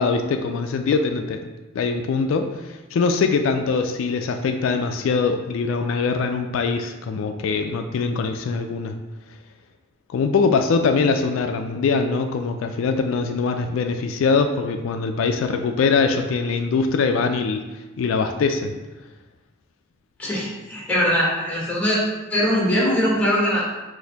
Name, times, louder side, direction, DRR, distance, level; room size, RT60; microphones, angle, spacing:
voice 1, 0.0-1.4 1.7-2.5 2.9-9.0 10.1-17.6 18.0-18.7, left 4 dB, 80° left, 6 dB, 0.3 m, -22 dB
voice 2, 20.2-22.0 22.3-23.6, equal, 5° left, -5 dB, 1.1 m, -21 dB
4.1 x 2.6 x 3.9 m, 1.1 s
head